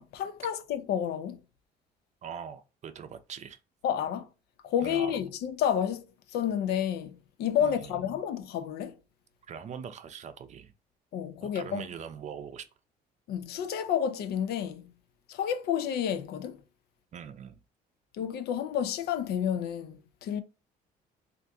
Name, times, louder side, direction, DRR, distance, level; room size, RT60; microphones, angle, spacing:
voice 1, 0.0-1.4 3.8-4.3 4.6-6.0 6.3-8.9 11.1-11.8 13.3-14.9 15.3-16.6 18.2-20.4, left 9 dB, 70° left, 0.5 m, -30 dB
voice 2, 2.2-3.6 4.8-5.2 7.6-8.0 9.5-10.7 11.4-12.6 17.1-17.6, right 7 dB, 45° right, 0.5 m, -42 dB
3.4 x 2.5 x 2.6 m
cardioid pair, 110°, 17 cm